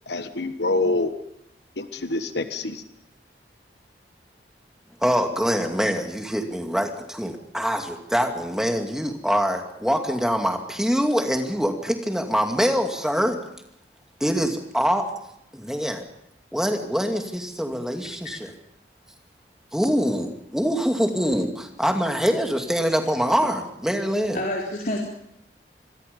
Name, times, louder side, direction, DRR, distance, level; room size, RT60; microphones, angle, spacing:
voice 1, 0.1-1.1 1.8-2.8, left 2 dB, 75° left, 9 dB, 1.4 m, -26 dB
voice 2, 5.0-13.4 14.2-15.1 15.5-16.0 16.5-18.5 19.7-24.4, equal, 5° right, 4 dB, 2.4 m, -24 dB
voice 3, 24.3-25.0, left 1 dB, 50° left, -2 dB, 3.8 m, -28 dB
27.0 x 21.5 x 5.4 m, 0.78 s
head